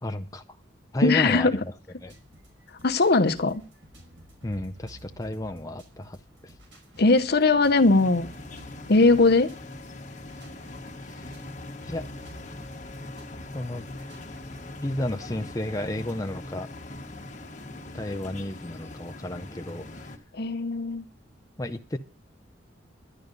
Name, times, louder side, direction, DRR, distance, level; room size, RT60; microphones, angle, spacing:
voice 1, 0.0-0.4 0.9-1.7 2.0-2.2 4.4-6.5 11.1-11.3 11.8-12.1 13.5-13.8 14.8-16.7 17.9-20.2 21.6-22.0, left 1 dB, 20° left, 0.6 m, -32 dB
voice 2, 1.0-1.6 2.8-3.6 7.0-8.3 8.9-9.5 20.4-21.0, left 3 dB, 60° left, 0.9 m, -20 dB
sound 1, 2.0-14.9, equal, 85° right, 5.0 m, -52 dB
sound 2, 7.7-20.2, left 2 dB, 40° left, 1.5 m, -41 dB
11.5 x 11.0 x 5.2 m
head